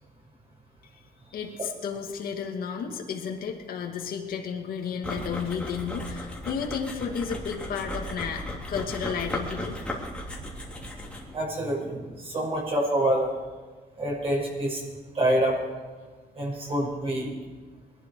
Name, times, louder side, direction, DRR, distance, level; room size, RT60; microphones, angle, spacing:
voice 1, 1.3-9.8, left 6 dB, 65° left, 2 dB, 2.2 m, -33 dB
sound 1, 5.0-11.4, left 1 dB, 5° left, 3.4 m, -36 dB
voice 2, 11.3-13.4 14.0-14.8 15.1-15.6 16.3-17.4, right 1 dB, 35° right, -2 dB, 5.7 m, -26 dB
22.0 x 12.0 x 4.9 m, 1.4 s
cardioid pair, 120°, 16 cm